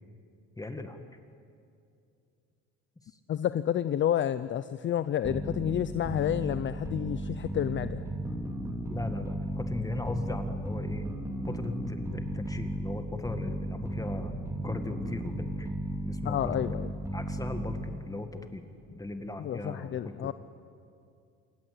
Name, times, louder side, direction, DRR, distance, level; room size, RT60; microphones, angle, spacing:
voice 1, 0.6-1.0 8.9-11.1 11.5-15.7 16.0-16.7 17.1-18.6 18.9-20.3, left 2 dB, 10° left, 7 dB, 1.9 m, -38 dB
voice 2, 3.3-8.1 16.2-16.9 19.4-20.3, left 10 dB, 40° left, 13 dB, 0.7 m, -30 dB
sound 1, 5.2-18.2, right 1 dB, 10° right, 3.5 m, -35 dB
27.5 x 23.5 x 8.6 m, 2.5 s
cardioid pair, 110°, 30 cm